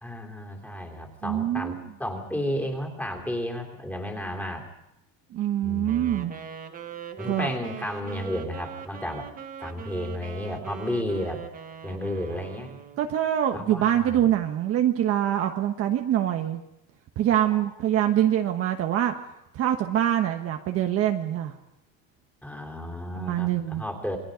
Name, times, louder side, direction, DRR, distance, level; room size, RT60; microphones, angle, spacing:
voice 1, 0.0-4.7 5.6-6.2 7.2-9.3 9.6-11.4 11.8-12.8 13.5-14.3 17.3-17.6 22.4-24.2, left 1 dB, 5° left, 2 dB, 3.0 m, -33 dB
voice 2, 1.2-1.8 5.3-6.3 7.3-7.5 13.0-16.6 17.2-19.1 19.5-21.5 23.1-23.8, right 11 dB, 40° right, 4 dB, 1.3 m, -24 dB
Wind instrument woodwind instrument, 5.9-13.3, right 7 dB, 25° right, 1.4 m, -41 dB
28.0 x 21.5 x 5.2 m, 0.85 s
cardioid pair, 170°, 36 cm